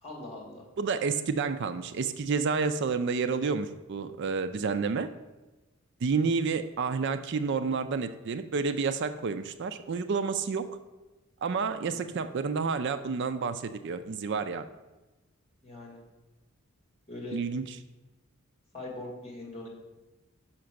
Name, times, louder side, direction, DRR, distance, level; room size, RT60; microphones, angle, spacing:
voice 1, 0.0-0.7 11.9-12.2 15.6-16.0 17.1-17.4 18.7-19.7, left 1 dB, 30° left, 0 dB, 2.3 m, -41 dB
voice 2, 0.8-5.1 6.0-10.7 11.4-14.6 17.3-17.6, right 5 dB, 55° right, 11 dB, 0.4 m, -29 dB
5.8 x 5.8 x 6.3 m, 1.1 s
head